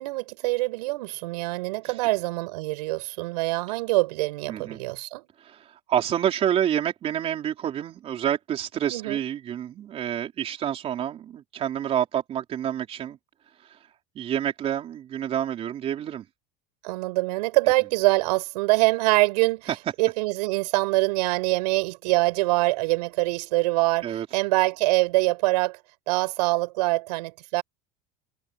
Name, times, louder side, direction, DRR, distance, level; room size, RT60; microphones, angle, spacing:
voice 1, 0.0-5.3 8.9-9.2 16.8-19.7 20.0-24.1 24.3-25.8 26.1-27.6, right 21 dB, 90° right, 7.8 m, -24 dB
voice 2, 4.5-4.8 5.4-13.2 13.6-13.8 14.2-16.3 19.7-19.8 24.0-24.3, right 10 dB, 30° right, 4.0 m, -28 dB
cardioid pair, 165°, 20 cm